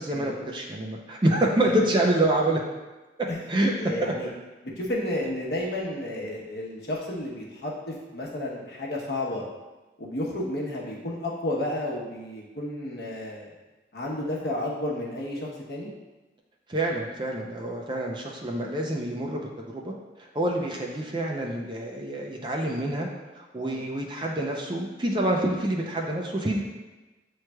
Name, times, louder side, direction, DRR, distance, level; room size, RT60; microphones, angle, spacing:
voice 1, 0.0-2.6 3.2-3.7 4.0-4.1 16.7-19.5 19.7-19.9 20.2-23.1 23.4-26.6, right 1 dB, 25° right, 0 dB, 0.4 m, -27 dB
voice 2, 3.8-4.3 4.8-9.4 10.0-13.5 13.9-15.9 23.6-23.8, left 1 dB, 65° left, -3 dB, 0.9 m, -32 dB
7.1 x 3.1 x 2.2 m, 1.2 s
head